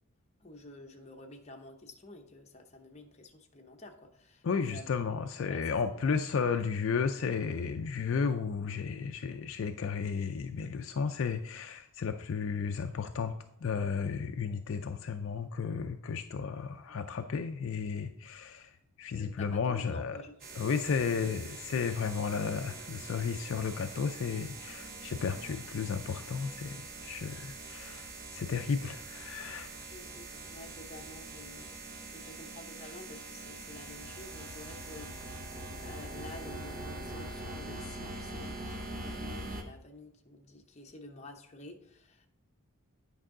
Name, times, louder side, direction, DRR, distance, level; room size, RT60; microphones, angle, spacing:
voice 1, 0.4-5.1 5.5-6.2 16.9-17.0 19.1-20.7 21.0-21.3 29.9-35.1 35.4-42.3, left 2 dB, 30° left, 3 dB, 0.8 m, -50 dB
voice 2, 4.4-13.3 13.6-20.2 20.5-29.7, left 5 dB, 60° left, 6 dB, 0.4 m, -33 dB
sound 1, 20.4-39.6, right 2 dB, 40° right, 0.9 m, -43 dB
8.9 x 5.4 x 3.7 m, 0.74 s
head